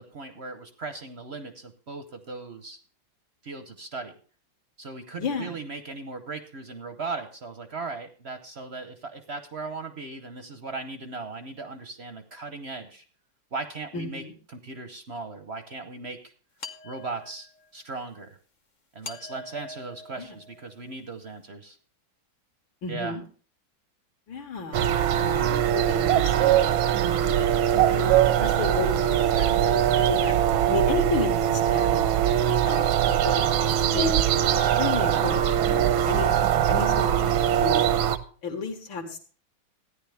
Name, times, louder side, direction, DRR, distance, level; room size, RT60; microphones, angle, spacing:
voice 1, 0.0-2.8 3.4-4.1 4.8-13.0 13.5-14.2 14.5-16.3 16.8-17.5 17.7-18.4 18.9-21.8 22.9-23.2, right 3 dB, 50° right, 8 dB, 0.7 m, -37 dB
voice 2, 5.2-5.6 13.9-14.3 20.2-20.4 22.8-23.2 24.3-24.8 25.4-26.8 27.9-30.3 30.7-32.1 32.6-33.4 33.9-34.2 34.7-37.9 38.4-39.2, left 4 dB, 75° left, 2 dB, 2.4 m, -32 dB
sound 1, 16.6-17.7 19.0-20.9, left 3 dB, 50° left, 0.5 m, -43 dB
sound 2, 24.7-38.2, right 10 dB, 80° right, 1.5 m, -22 dB
14.0 x 9.9 x 3.3 m, 0.41 s
omnidirectional pair, 2.2 m